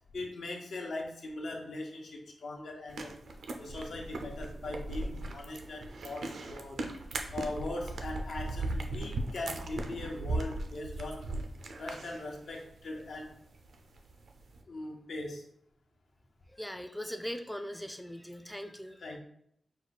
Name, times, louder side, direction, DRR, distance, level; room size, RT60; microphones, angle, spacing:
voice 1, 0.1-3.1 3.6-6.9 7.2-13.4 14.7-15.4 19.0-19.2, left 2 dB, 75° left, 1 dB, 0.9 m, -40 dB
sound 1, 2.9-14.6, right 2 dB, 80° right, 0.5 m, -38 dB
voice 2, 16.5-19.0, equal, 5° left, 7 dB, 0.4 m, -40 dB
4.6 x 2.3 x 4.1 m, 0.70 s
wide cardioid pair, 105°, 0 cm